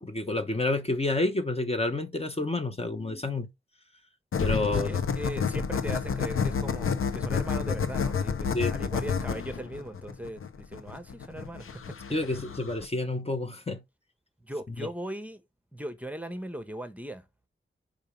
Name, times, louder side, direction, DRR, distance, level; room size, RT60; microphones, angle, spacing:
voice 1, 0.0-3.5 4.4-4.9 5.6-5.7 8.5-8.7 12.1-13.8 14.8-14.9, left 2 dB, 30° left, 1.1 m, -29 dB
sound 1, 4.3-12.8, left 6 dB, 80° left, 0.9 m, -30 dB
voice 2, 4.8-12.0 14.4-15.4 15.7-17.2, right 1 dB, 5° right, 1.1 m, -39 dB
5.3 x 5.1 x 5.2 m
wide cardioid pair, 75°, 21 cm